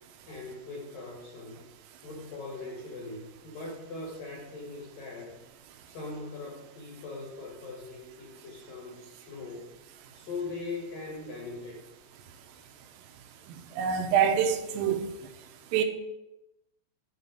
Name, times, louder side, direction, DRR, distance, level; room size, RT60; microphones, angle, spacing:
voice 1, 0.3-1.7 2.0-5.4 5.9-9.7 10.1-11.8, left 3 dB, 65° left, 2.2 m, -40 dB
voice 2, 13.8-15.0 15.7-15.8, right 8 dB, 85° right, 3.4 m, -25 dB
9.4 x 4.2 x 6.9 m
omnidirectional pair, 5.8 m